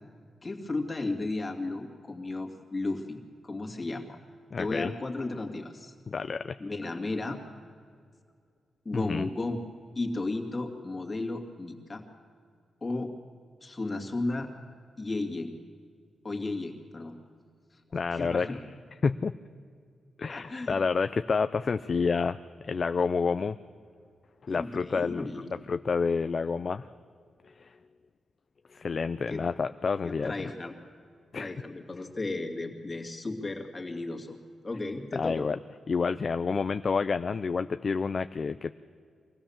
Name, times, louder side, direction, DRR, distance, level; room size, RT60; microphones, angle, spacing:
voice 1, 0.4-4.2 4.6-5.9 6.6-7.4 8.8-9.6 10.0-12.0 12.8-13.1 13.6-14.5 15.0-15.5 16.2-17.2 17.7-18.6 20.3-20.8 24.5-25.5 29.3-29.4 30.0-30.7 31.3-34.4 34.6-35.5, left 2 dB, 25° left, 2 dB, 2.4 m, -34 dB
voice 2, 4.5-5.0 6.1-6.6 8.9-9.3 17.9-18.5 19.0-19.3 20.2-22.4 22.7-23.6 24.5-25.3 25.7-26.9 27.6-27.7 28.7-30.3 31.3-31.5 35.1-35.6 35.9-38.7, left 5 dB, 45° left, 11 dB, 0.4 m, -29 dB
24.0 x 16.5 x 7.2 m, 2.1 s
cardioid pair, 110°, 0 cm